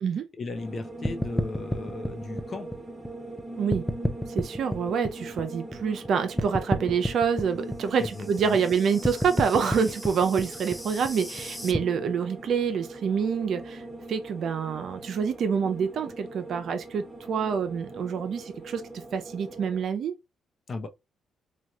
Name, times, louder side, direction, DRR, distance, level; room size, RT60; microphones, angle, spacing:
voice 1, 0.4-2.7 8.0-8.6 20.7-20.9, left 3 dB, 45° left, 0.7 m, -36 dB
sound 1, 0.5-19.8, right 1 dB, 20° right, 1.1 m, -41 dB
sound 2, 1.0-3.4 3.7-6.1 6.4-11.8, equal, 5° left, 0.5 m, -31 dB
voice 2, 4.3-13.8 14.1-18.8 19.1-20.1, right 6 dB, 65° right, 0.5 m, -27 dB
3.1 x 2.4 x 2.8 m
supercardioid pair, 65°, 0 cm